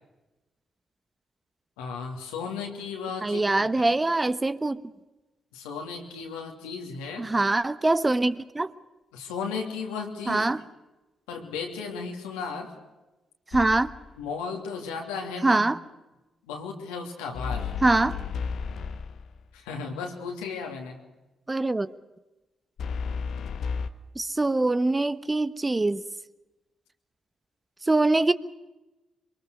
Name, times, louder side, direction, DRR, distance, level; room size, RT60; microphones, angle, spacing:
voice 1, 1.8-3.9 5.5-7.3 9.1-10.5 11.3-12.7 14.2-15.7 16.5-17.7 19.5-21.0, left 5 dB, 90° left, 2 dB, 3.0 m, -35 dB
voice 2, 3.2-4.8 7.2-8.7 10.3-10.6 13.5-13.9 15.4-15.8 17.8-18.2 21.5-21.9 24.1-26.0 27.9-28.3, right 2 dB, 25° right, 14 dB, 1.1 m, -23 dB
reverba-rhythm-bass, 13.5-14.1 17.4-19.4 22.8-23.9, left 5 dB, 65° left, 1.2 m, -33 dB
23.5 x 22.5 x 6.5 m, 1.1 s
hypercardioid pair, 50°, 0 cm